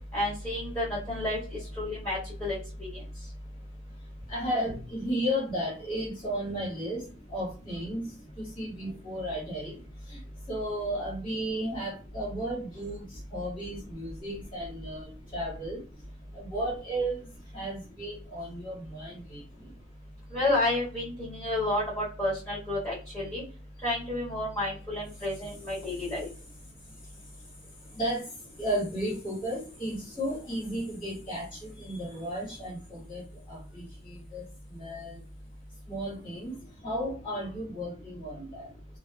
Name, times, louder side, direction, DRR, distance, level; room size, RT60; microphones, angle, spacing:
voice 1, 0.1-3.0 20.3-23.4 23.8-26.3, left 1 dB, 10° left, -11 dB, 1.4 m, -31 dB
voice 2, 4.3-7.0 7.3-8.0 8.4-9.7 10.1-10.2 10.5-15.8 16.3-17.2 17.5-19.4 28.0-28.2 28.6-34.4 34.7-35.2 35.9-36.5 36.8-38.7, equal, 25° left, -4 dB, 1.1 m, -34 dB
2.8 x 2.1 x 2.3 m, 0.37 s
head